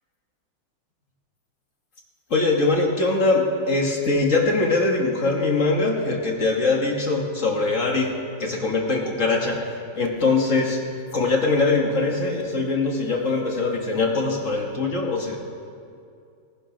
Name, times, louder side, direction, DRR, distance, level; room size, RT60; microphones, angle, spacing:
voice 1, 2.3-8.1 8.4-10.8 11.1-15.4, left 3 dB, 45° left, 0 dB, 2.0 m, -22 dB
17.0 x 12.5 x 5.2 m, 2.3 s
omnidirectional pair, 1.9 m